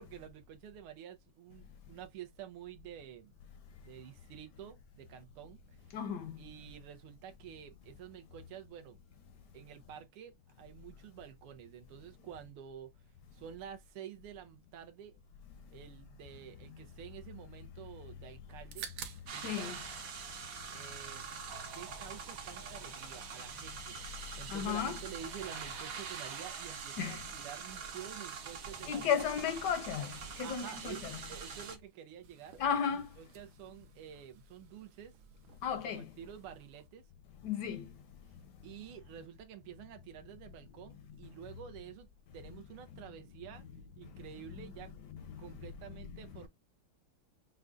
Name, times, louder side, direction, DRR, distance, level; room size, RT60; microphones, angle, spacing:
voice 1, 0.0-3.3 3.7-5.8 6.3-9.0 9.5-12.9 13.3-15.2 15.7-18.9 19.3-19.7 20.7-21.4 21.7-29.2 30.4-31.0 31.3-32.6 32.9-35.1 35.8-37.1 38.3-42.1 42.3-43.7 44.0-44.9 45.4-46.5, right 10 dB, 90° right, 1.7 m, -49 dB
voice 2, 5.9-6.3 19.4-19.8 24.5-25.0 27.0-27.2 28.9-30.1 30.4-31.2 32.6-33.1 35.6-36.1 37.4-37.9, left 8 dB, 75° left, 1.0 m, -34 dB
sound 1, 18.5-19.7 20.0-21.1 21.4-36.9, right 8 dB, 75° right, 1.5 m, -56 dB
sound 2, 19.3-31.8, right 6 dB, 55° right, 1.0 m, -44 dB
6.1 x 2.2 x 2.5 m
omnidirectional pair, 2.4 m